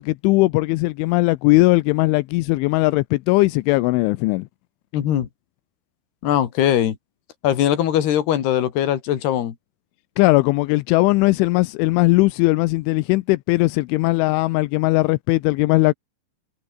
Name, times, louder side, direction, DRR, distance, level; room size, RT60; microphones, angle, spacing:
voice 1, 0.0-4.5 10.2-15.9, left 22 dB, 85° left, 3.1 m, -19 dB
voice 2, 4.9-5.3 6.2-7.0 7.4-9.6, left 11 dB, 60° left, 4.1 m, -20 dB
open air
omnidirectional pair, 5.4 m